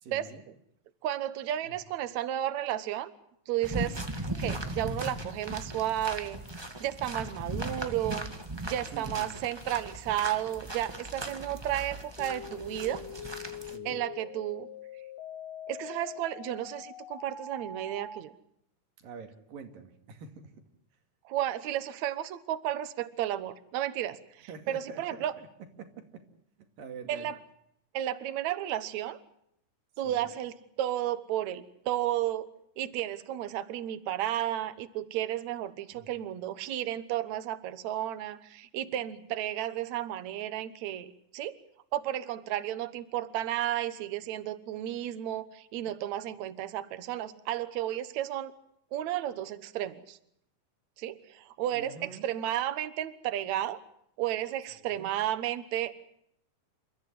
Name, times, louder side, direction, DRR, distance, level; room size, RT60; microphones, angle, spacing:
voice 1, 0.0-0.4 1.6-1.8 8.9-9.5 11.2-11.3 13.7-14.0 19.0-20.5 24.5-26.2 26.8-27.3 30.0-30.3 35.9-36.1 51.7-52.3 54.8-55.1, right 5 dB, 85° right, 6 dB, 4.1 m, -46 dB
voice 2, 1.0-3.1 3.5-4.0 4.4-6.4 6.8-8.3 8.7-13.0 13.8-14.7 15.7-18.3 21.3-25.3 27.1-27.4 27.9-29.2 30.0-32.5 32.8-41.6 41.9-48.5 48.9-50.2 51.0-53.8 54.2-56.0, right 12 dB, 65° right, 14 dB, 2.3 m, -33 dB
sound 1, 3.6-13.8, right 1 dB, 35° right, 0.4 m, -38 dB
sound 2, 12.2-18.2, left 6 dB, 75° left, 3.7 m, -43 dB
29.5 x 14.0 x 9.5 m, 0.74 s
omnidirectional pair, 3.9 m